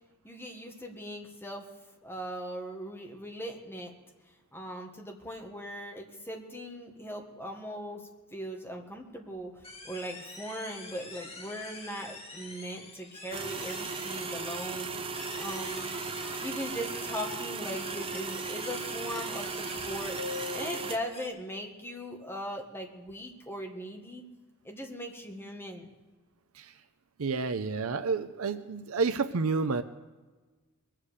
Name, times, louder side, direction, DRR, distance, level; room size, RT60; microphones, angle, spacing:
voice 1, 0.2-1.7 2.0-3.9 4.3-8.0 8.3-15.9 16.4-20.2 20.5-24.2 24.6-25.9, equal, 10° left, 1 dB, 1.7 m, -39 dB
sound 1, 9.6-21.3, left 3 dB, 25° left, 1.8 m, -46 dB
sound 2, 13.3-21.0, right 4 dB, 25° right, 0.7 m, -36 dB
sound 3, 20.2-21.7, left 5 dB, 80° left, 1.4 m, -41 dB
voice 2, 27.2-29.8, right 4 dB, 75° right, 10 dB, 0.6 m, -30 dB
22.0 x 7.7 x 6.6 m, 1.3 s
head